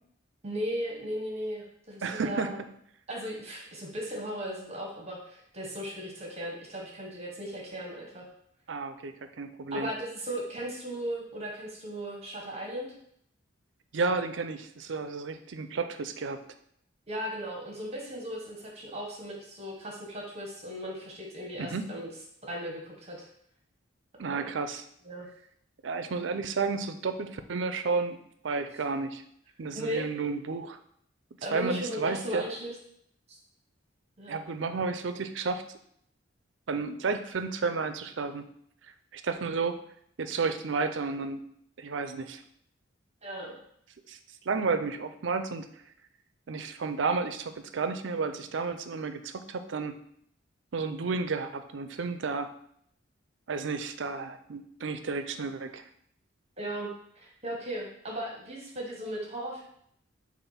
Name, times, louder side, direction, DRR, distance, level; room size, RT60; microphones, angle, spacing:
voice 1, 0.4-2.6 3.1-8.2 9.7-12.9 17.1-22.1 22.4-23.3 24.2-24.5 25.0-25.3 29.7-30.0 31.4-32.8 34.2-34.4 43.2-43.6 56.6-59.6, equal, 35° right, -1 dB, 1.1 m, -37 dB
voice 2, 2.0-2.5 8.7-9.9 13.9-16.4 21.6-21.9 24.2-24.8 25.8-28.2 28.4-29.2 29.6-30.8 31.5-32.4 34.3-35.6 36.7-38.5 39.1-39.8 40.2-41.4 41.8-42.4 44.1-44.2 44.4-45.7 46.5-50.0 50.7-52.5 53.5-55.8, right 4 dB, 70° right, 9 dB, 0.5 m, -32 dB
6.8 x 2.6 x 5.6 m, 0.69 s
head